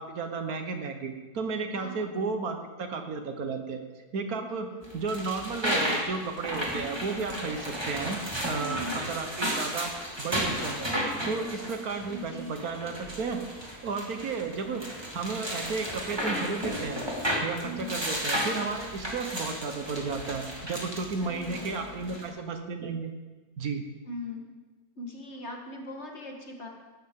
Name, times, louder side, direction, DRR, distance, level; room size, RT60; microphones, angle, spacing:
voice 1, 0.0-3.8 4.1-4.7 4.9-9.9 10.2-13.4 13.8-14.8 15.1-17.0 17.4-23.1 23.6-23.8, right 4 dB, 70° right, 6 dB, 1.6 m, -33 dB
voice 2, 1.7-2.2 4.5-4.6 8.6-9.1 12.1-12.6 17.6-18.0 21.2-22.2 24.0-24.4 25.0-26.7, left 1 dB, 45° left, 2 dB, 1.8 m, -40 dB
sound 1, 4.8-22.3, equal, 15° right, 2.1 m, -34 dB
16.5 x 12.0 x 3.7 m, 1.2 s
omnidirectional pair, 1.7 m